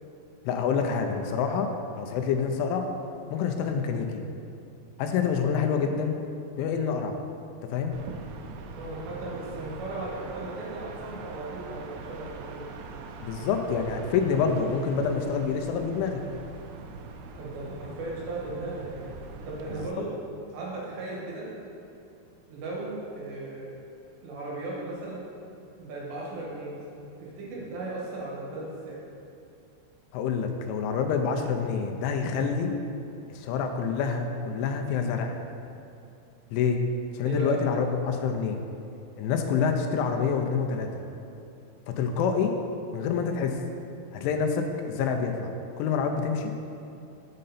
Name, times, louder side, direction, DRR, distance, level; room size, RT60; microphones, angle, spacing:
voice 1, 0.5-2.9 3.3-4.1 5.0-6.2 6.6-7.2 7.6-8.0 13.2-16.2 30.1-32.7 33.3-35.4 36.5-36.8 37.1-38.6 39.2-41.0 41.9-42.5 42.9-43.6 44.1-45.5 45.8-46.6, left 6 dB, 85° left, 4 dB, 3.0 m, -27 dB
sound 1, 7.9-19.9, right 4 dB, 85° right, 3.0 m, -42 dB
voice 2, 8.8-12.7 17.4-19.1 19.4-20.1 20.5-21.5 22.5-23.7 24.2-25.2 25.8-26.8 27.2-29.0 37.2-37.5, right 2 dB, 70° right, -5 dB, 3.4 m, -36 dB
7.5 x 6.5 x 4.1 m, 2.7 s
omnidirectional pair, 5.5 m